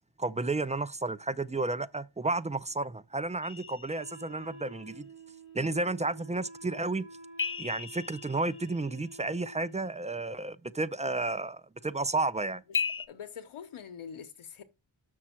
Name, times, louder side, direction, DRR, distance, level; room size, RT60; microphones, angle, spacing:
voice 1, 0.2-5.1 5.5-7.0 7.6-12.6, right 2 dB, 15° right, 0.3 m, -32 dB
sound 1, 3.4-4.7 7.4-9.4 12.7-13.1, left 5 dB, 25° left, 0.7 m, -36 dB
Wind instrument woodwind instrument, 3.9-9.8, right 2 dB, 80° right, 4.6 m, -50 dB
voice 2, 13.1-14.6, left 7 dB, 85° left, 0.9 m, -44 dB
7.0 x 6.2 x 4.3 m
wide cardioid pair, 95°, 49 cm